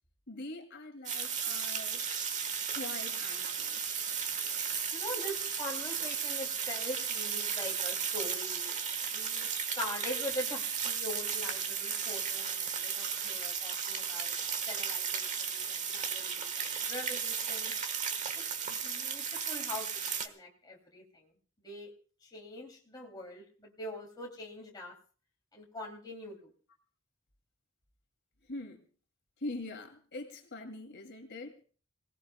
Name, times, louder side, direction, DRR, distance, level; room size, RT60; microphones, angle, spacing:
voice 1, 0.3-2.0 2.7-3.9 28.5-28.8 29.4-31.5, left 2 dB, 60° left, 4 dB, 2.5 m, -43 dB
sound 1, 1.0-20.3, right 7 dB, 35° right, 1.4 m, -35 dB
voice 2, 4.9-8.8 9.1-9.5 9.8-14.4 14.7-17.7 18.3-21.9 22.2-25.0 25.5-26.5, left 1 dB, 20° left, -1 dB, 2.8 m, -43 dB
27.5 x 18.0 x 2.2 m, 0.39 s
head